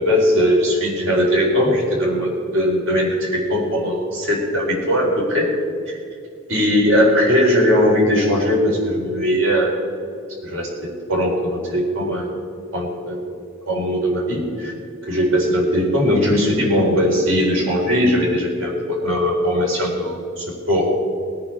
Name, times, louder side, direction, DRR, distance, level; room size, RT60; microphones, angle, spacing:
voice 1, 0.0-5.6 5.9-6.0 6.5-9.8 10.4-10.7 11.1-12.3 12.7-13.3 13.7-14.7 15.1-20.9, equal, 75° right, -2 dB, 4.3 m, -19 dB
21.0 x 9.7 x 4.5 m, 2.4 s
head